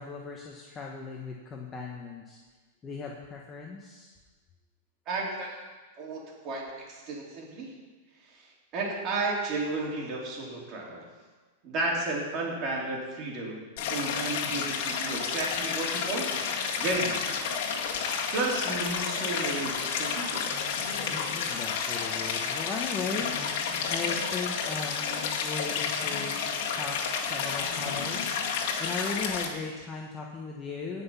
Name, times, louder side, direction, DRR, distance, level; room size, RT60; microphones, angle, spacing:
voice 1, 0.0-2.4 2.8-4.1 21.1-31.0, left 4 dB, 20° left, 0 dB, 1.2 m, -37 dB
voice 2, 5.1-5.6 6.0-7.7 8.3-8.4 8.7-11.1 11.6-13.6 13.9-16.3 16.7-17.4 18.3-20.5, right 2 dB, 35° right, -2 dB, 3.6 m, -33 dB
Stream, 13.8-29.5, left 6 dB, 55° left, 2.0 m, -31 dB
17.5 x 5.9 x 5.7 m, 1.3 s
supercardioid pair, 140°, 0 cm